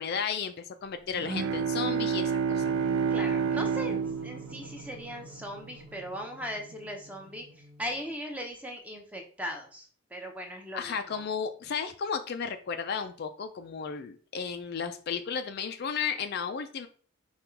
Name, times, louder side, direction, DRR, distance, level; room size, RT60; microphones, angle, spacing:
voice 1, 0.0-2.6 10.7-16.9, left 6 dB, 45° left, 8 dB, 0.3 m, -34 dB
Bowed string instrument, 1.1-5.7, right 6 dB, 55° right, 0.4 m, -29 dB
sound 1, 2.6-8.1, left 1 dB, 75° right, 1.4 m, -50 dB
voice 2, 3.1-7.5 7.8-11.2, equal, 5° right, 2 dB, 0.7 m, -39 dB
5.2 x 2.3 x 4.4 m, 0.43 s
head